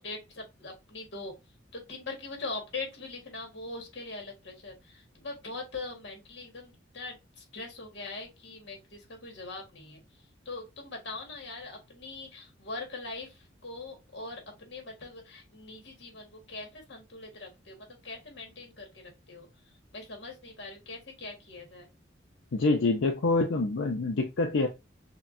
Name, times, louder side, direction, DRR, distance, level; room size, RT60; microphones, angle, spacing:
voice 1, 0.0-1.3 1.7-19.5 19.9-21.9, left 3 dB, 65° left, 1.5 m, -42 dB
voice 2, 22.5-24.7, left 3 dB, 90° left, 0.6 m, -26 dB
5.6 x 2.2 x 2.6 m
head